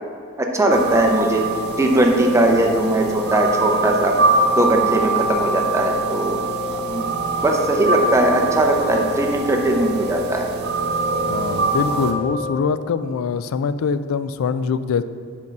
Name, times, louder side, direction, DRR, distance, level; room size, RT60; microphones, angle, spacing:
voice 1, 0.5-1.4 1.8-4.1 4.5-6.4 6.7-7.1 7.4-10.5, right 1 dB, 15° right, 1 dB, 0.6 m, -19 dB
sound 1, 0.7-12.1, right 3 dB, 50° right, 0.7 m, -23 dB
sound 2, 2.0-3.8 4.2-6.1 6.4-8.3 8.6-10.5 10.8-12.7, left 6 dB, 55° left, 0.7 m, -33 dB
voice 2, 11.3-15.0, left 5 dB, 85° left, 14 dB, 0.3 m, -23 dB
5.3 x 5.3 x 6.6 m, 2.3 s
head